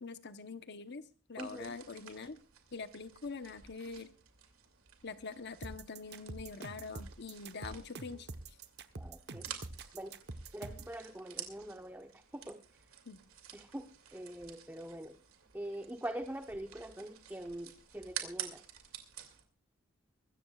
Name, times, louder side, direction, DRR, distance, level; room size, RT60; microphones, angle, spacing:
voice 1, 0.0-2.4 2.7-4.1 5.0-8.6 13.1-13.2, left 4 dB, 50° left, 11 dB, 0.9 m, -44 dB
voice 2, 1.4-1.7 9.0-9.5 9.9-10.2 10.5-12.6 13.5-13.9 14.1-15.2 15.5-18.6, right 1 dB, 10° right, 6 dB, 0.9 m, -43 dB
sound 1, 1.4-19.4, right 10 dB, 75° right, 2.6 m, -50 dB
sound 2, 5.6-11.0, right 2 dB, 50° right, 1.0 m, -46 dB
24.0 x 14.0 x 2.4 m, 0.33 s
head